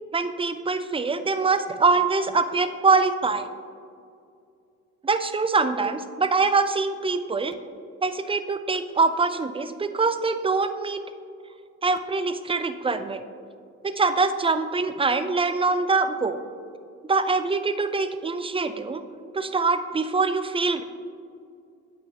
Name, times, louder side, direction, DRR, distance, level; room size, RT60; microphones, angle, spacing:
voice 1, 0.1-3.5 5.0-7.6 8.0-11.0 11.8-13.2 13.8-16.4 17.0-19.0 19.3-20.8, right 4 dB, 15° right, 10 dB, 0.5 m, -24 dB
9.2 x 7.7 x 2.9 m, 2.4 s
hypercardioid pair, 45°, 38 cm